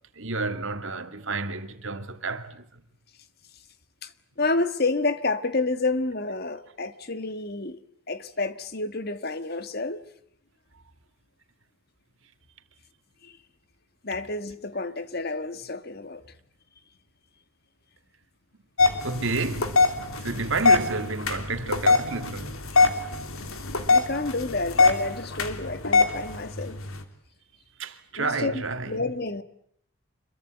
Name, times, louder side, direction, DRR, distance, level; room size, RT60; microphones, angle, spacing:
voice 1, 0.2-2.6 19.0-22.6 27.8-29.0, right 3 dB, 65° right, 2.4 m, -30 dB
voice 2, 4.4-7.8 8.1-10.0 13.2-13.3 14.0-16.2 23.9-26.8 28.2-29.4, left 3 dB, 45° left, 1.6 m, -29 dB
sound 1, 18.8-27.0, left 4 dB, 80° left, 3.2 m, -23 dB
26.5 x 22.5 x 9.0 m
head